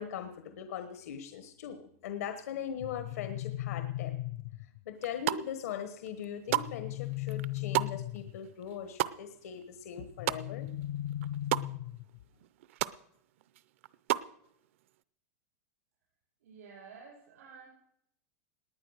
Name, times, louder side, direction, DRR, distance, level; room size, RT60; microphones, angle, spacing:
voice 1, 0.0-4.1 4.9-10.7, left 8 dB, 80° left, 8 dB, 1.3 m, -40 dB
sound 1, 2.8-4.8 6.5-8.5 10.2-12.2, left 15 dB, 55° left, 0.6 m, -37 dB
sound 2, 4.9-5.7 6.1-10.8 11.1-11.7 12.1-12.2 12.4-13.0 13.4-14.3, right 16 dB, 60° right, 0.5 m, -33 dB
voice 2, 16.4-17.7, right 5 dB, 85° right, -2 dB, 5.5 m, -51 dB
19.0 x 9.5 x 6.4 m, 0.75 s
supercardioid pair, 170°, 8 cm